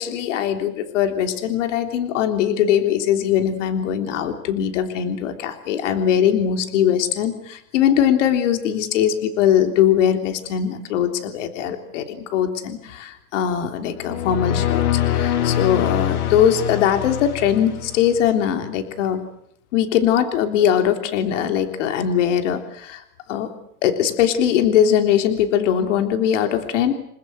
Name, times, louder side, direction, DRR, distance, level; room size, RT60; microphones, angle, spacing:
voice 1, 0.0-14.8 15.1-19.3 19.7-23.0 23.3-23.5 23.8-26.9, left 9 dB, 55° left, 6 dB, 3.6 m, -21 dB
sound 1, 13.9-18.3, left 10 dB, 85° left, 4.6 m, -24 dB
29.5 x 21.0 x 8.0 m, 0.72 s
supercardioid pair, 175°, 43 cm